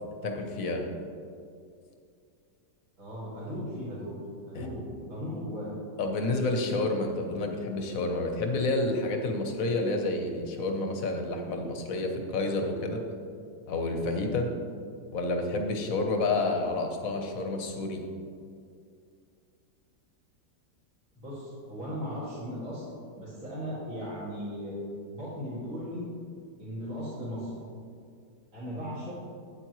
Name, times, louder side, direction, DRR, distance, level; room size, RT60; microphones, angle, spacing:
voice 1, 0.2-0.8 4.5-4.7 6.0-13.0 13.7-14.5 15.1-18.0, left 2 dB, 55° left, 3 dB, 1.2 m, -29 dB
voice 2, 3.0-4.1 4.5-5.7 21.2-22.9 23.2-24.8 25.1-26.0 26.6-27.5 28.5-29.1, equal, 50° right, -11 dB, 2.7 m, -37 dB
8.8 x 8.5 x 3.1 m, 2.3 s
omnidirectional pair, 1.9 m